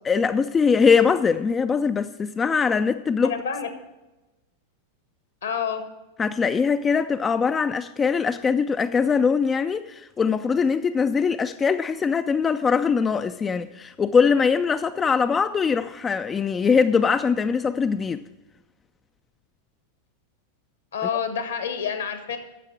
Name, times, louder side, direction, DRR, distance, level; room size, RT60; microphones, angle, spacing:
voice 1, 0.1-3.3 6.2-18.2, left 5 dB, 20° left, 0.3 m, -22 dB
voice 2, 3.2-3.7 5.4-5.8 20.9-22.4, left 7 dB, 65° left, 1.3 m, -28 dB
10.0 x 7.2 x 7.2 m
figure-of-eight pair, 90°, 0 cm